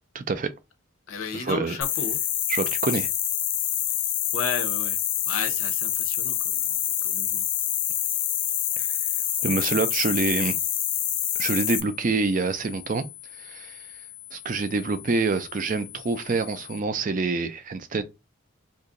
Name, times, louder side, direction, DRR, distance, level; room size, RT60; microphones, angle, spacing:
voice 1, 0.1-0.5 1.3-1.8 2.5-3.1 8.8-8.9 9.4-10.6 11.4-13.0 13.3-13.9 14.3-18.0, right 3 dB, 40° right, 0.4 m, -26 dB
voice 2, 1.1-2.2 4.3-7.5, left 5 dB, 80° left, 0.7 m, -34 dB
sound 1, 1.8-11.8, left 11 dB, 40° left, 0.3 m, -26 dB
sound 2, 6.8-16.8, left 13 dB, 20° left, 0.7 m, -45 dB
2.9 x 2.6 x 3.7 m
head